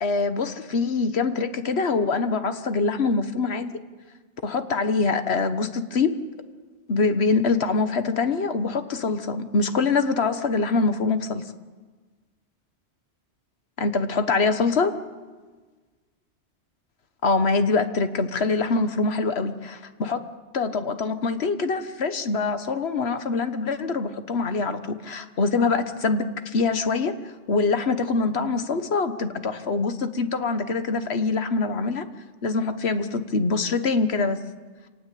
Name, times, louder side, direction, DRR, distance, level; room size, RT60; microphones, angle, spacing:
voice 1, 0.0-3.8 4.4-6.1 6.9-11.4 13.8-14.9 17.2-20.2 20.5-27.1 27.5-32.0 32.4-34.4, left 4 dB, 65° left, 9 dB, 1.6 m, -24 dB
26.5 x 19.0 x 8.5 m, 1.4 s
omnidirectional pair, 1.2 m